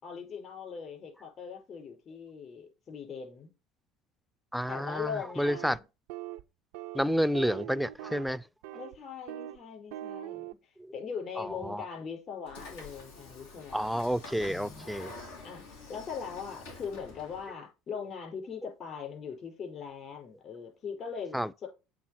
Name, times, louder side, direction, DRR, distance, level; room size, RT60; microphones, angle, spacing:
voice 1, 0.0-3.5 4.7-5.8 8.7-13.9 14.5-14.8 15.4-21.7, left 6 dB, 45° left, 5.1 m, -41 dB
voice 2, 4.5-5.8 6.9-8.4 10.8-10.9 11.4-11.9 13.7-15.1 21.3-21.5, equal, ahead, 0.4 m, -30 dB
sound 1, 5.5-5.8 6.1-6.4 6.7-7.0 7.3-8.3 8.6-9.0 9.3-9.6 9.9-10.5, right 14 dB, 75° right, 0.4 m, -41 dB
Train / Sliding door, 12.5-17.5, left 3 dB, 85° left, 2.3 m, -48 dB
7.8 x 3.8 x 5.8 m
hypercardioid pair, 75°, 0 cm